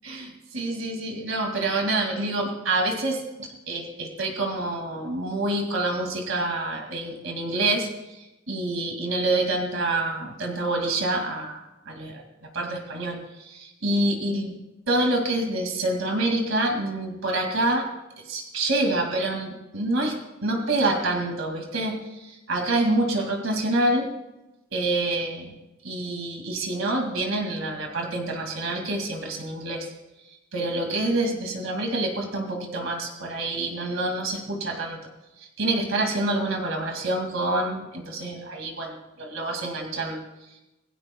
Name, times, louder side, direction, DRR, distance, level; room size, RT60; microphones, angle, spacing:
voice 1, 0.0-14.6 14.9-17.9 18.3-20.2 20.4-22.0 22.2-24.1 24.7-25.5 25.8-29.9 30.5-35.0 35.6-40.2, right 2 dB, 75° right, 2 dB, 2.2 m, -27 dB
26.5 x 17.0 x 2.3 m, 0.97 s
head